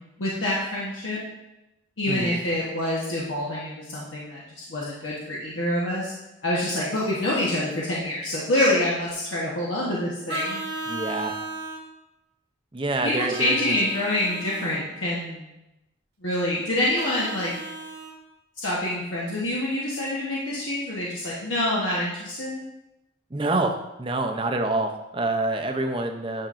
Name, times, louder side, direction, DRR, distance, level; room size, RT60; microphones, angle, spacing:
voice 1, 0.2-1.2 2.0-6.1 6.4-10.6 13.0-15.5 16.2-17.5 18.6-22.6, left 1 dB, 75° left, -6 dB, 1.2 m, -26 dB
voice 2, 2.1-2.4 10.9-11.3 12.7-13.8 23.3-26.5, right 2 dB, 25° right, 5 dB, 0.6 m, -27 dB
Vehicle horn car horn honking, 10.3-11.8 13.3-14.8 16.9-18.1, right 2 dB, 55° right, 1.0 m, -35 dB
10.0 x 5.8 x 2.6 m, 0.97 s
head